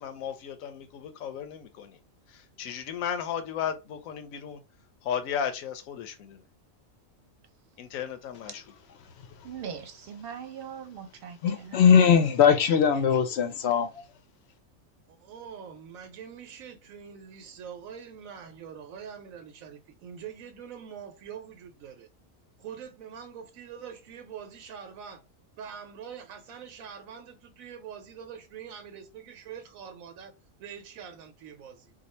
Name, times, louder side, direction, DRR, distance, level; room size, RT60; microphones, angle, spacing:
voice 1, 0.0-2.0 2.3-4.6 5.0-6.4 7.8-8.5, left 8 dB, 85° left, 1.0 m, -34 dB
voice 2, 9.4-12.0, right 7 dB, 50° right, 0.8 m, -41 dB
voice 3, 11.4-14.0, left 7 dB, 60° left, 0.8 m, -20 dB
voice 4, 15.1-22.1 22.6-25.2 25.6-30.3 30.6-31.9, right 7 dB, 85° right, 1.1 m, -44 dB
2.7 x 2.4 x 4.1 m
omnidirectional pair, 1.4 m